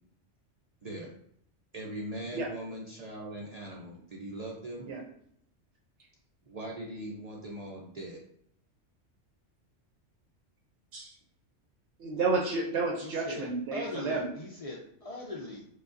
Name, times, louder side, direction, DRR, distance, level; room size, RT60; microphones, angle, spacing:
voice 1, 0.8-1.1 1.7-4.9 6.5-8.2, right 1 dB, 55° right, -3 dB, 0.4 m, -40 dB
voice 2, 12.0-14.3, right 3 dB, 70° right, 0 dB, 0.9 m, -31 dB
voice 3, 13.0-15.6, left 2 dB, 60° left, -3 dB, 0.3 m, -40 dB
4.7 x 2.3 x 2.5 m, 0.69 s
omnidirectional pair, 1.3 m